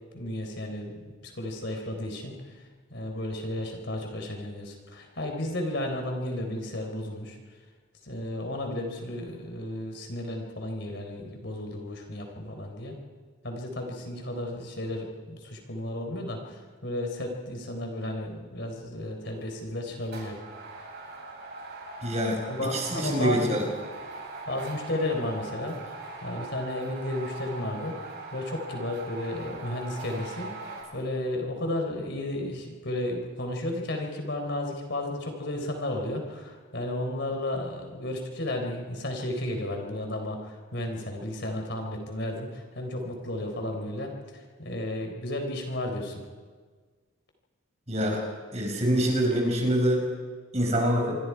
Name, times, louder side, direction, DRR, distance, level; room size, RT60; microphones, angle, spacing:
voice 1, 0.1-2.5 2.9-7.4 8.0-13.0 13.4-20.4 22.5-23.7 24.5-30.5 30.9-46.2, left 1 dB, 55° left, 3 dB, 4.2 m, -33 dB
sound 1, 19.2-19.5 20.0-30.8, right 2 dB, 55° right, 7.9 m, -41 dB
voice 2, 22.0-22.4 22.7-23.7 47.9-48.2 48.5-50.1 50.5-51.2, equal, 30° right, 1 dB, 5.1 m, -25 dB
26.0 x 25.0 x 4.8 m, 1.5 s
head